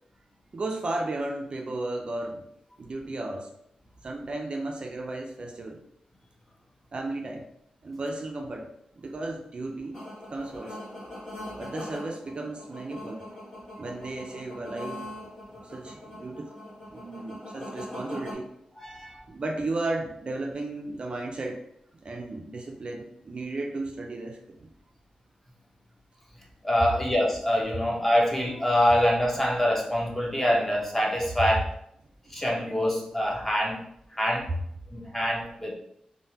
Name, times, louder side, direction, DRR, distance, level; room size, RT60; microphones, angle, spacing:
voice 1, 0.5-2.5 2.8-3.5 4.0-5.8 6.9-7.5 7.8-8.7 9.0-10.0 10.3-10.8 11.6-13.2 13.7-15.1 15.6-16.5 16.9-18.5 19.3-21.6 22.0-24.7 32.3-32.4, right 2 dB, 45° right, 2 dB, 0.3 m, -34 dB
sound 1, 9.9-18.3, left 1 dB, 25° left, 1.3 m, -42 dB
voice 2, 18.8-19.2 26.6-31.7 32.3-33.8 34.2-34.5 34.9-35.7, equal, 10° left, -2 dB, 0.7 m, -25 dB
3.2 x 2.1 x 2.8 m, 0.74 s
cardioid pair, 80°, 2 cm